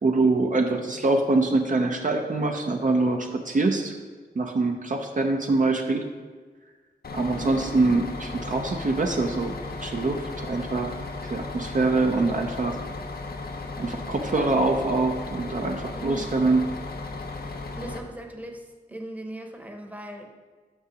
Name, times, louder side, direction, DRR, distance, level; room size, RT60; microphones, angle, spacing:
voice 1, 0.0-3.9 4.4-6.0 7.1-11.0 11.2-12.8 13.8-16.6, right 3 dB, 50° right, 3 dB, 0.7 m, -24 dB
Bus, 7.0-18.0, left 3 dB, 70° left, 0.8 m, -35 dB
voice 2, 7.3-7.8 14.4-14.6 15.9-16.4 17.6-20.3, right 1 dB, 10° right, 3 dB, 0.9 m, -39 dB
5.9 x 5.6 x 6.2 m, 1.5 s
wide cardioid pair, 75°, 17 cm